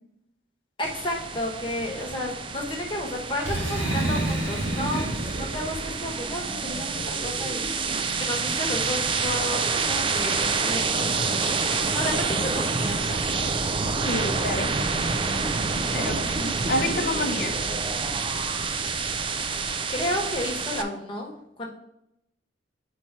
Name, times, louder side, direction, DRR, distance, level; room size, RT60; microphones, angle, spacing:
voice 1, 0.8-7.7 8.2-13.6 19.9-21.7, left 1 dB, 25° left, -1 dB, 1.1 m, -32 dB
sound 1, 0.8-20.8, right 4 dB, 25° right, 0.3 m, -28 dB
Boom, 3.4-6.2, right 1 dB, 80° right, 1.8 m, -29 dB
voice 2, 14.1-14.7 15.9-17.6, left 2 dB, 45° left, 6 dB, 0.7 m, -28 dB
4.6 x 4.3 x 5.6 m, 0.80 s
head